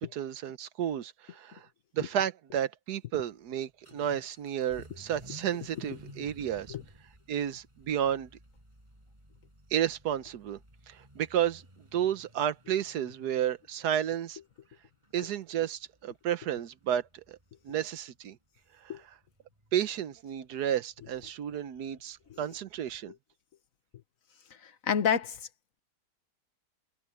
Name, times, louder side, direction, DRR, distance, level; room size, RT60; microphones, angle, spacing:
voice 1, 0.0-1.7 1.9-6.7 7.3-8.3 9.7-10.6 10.9-11.6 11.9-14.4 15.1-17.4 17.6-18.4 19.7-23.1, right 10 dB, 75° right, 1.4 m, -32 dB
Vehicle / Accelerating revving vroom, 3.3-23.1, right 1 dB, 15° right, 7.0 m, -57 dB
voice 2, 24.6-25.5, left 7 dB, 55° left, 1.3 m, -30 dB
omnidirectional pair, 1.7 m